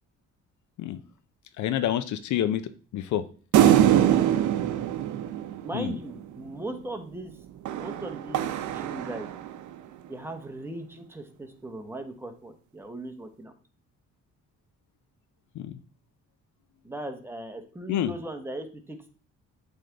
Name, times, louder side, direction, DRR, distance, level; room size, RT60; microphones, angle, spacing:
voice 1, 1.6-2.6 2.9-3.2 5.7-5.9 15.6-15.7 17.9-18.1, left 11 dB, 70° left, 12 dB, 0.6 m, -27 dB
sound 1, 3.5-6.2 7.7-9.7, right 11 dB, 75° right, 0.6 m, -23 dB
voice 2, 3.6-4.4 5.6-7.3 7.8-9.3 10.1-13.5 16.8-19.1, right 1 dB, 10° right, 5 dB, 1.1 m, -38 dB
7.6 x 3.5 x 3.8 m, 0.40 s
cardioid pair, 90°, 30 cm